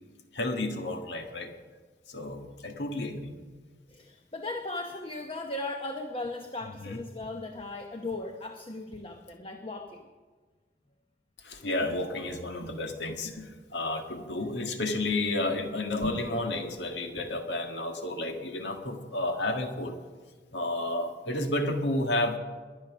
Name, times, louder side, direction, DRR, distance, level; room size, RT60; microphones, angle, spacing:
voice 1, 0.3-1.5 2.1-3.3 6.8-7.0 11.4-19.9 20.5-22.4, left 2 dB, 80° left, 4 dB, 1.8 m, -31 dB
voice 2, 3.9-10.1 17.2-17.3, left 2 dB, 30° left, 4 dB, 0.9 m, -37 dB
22.0 x 9.3 x 6.2 m, 1.4 s
head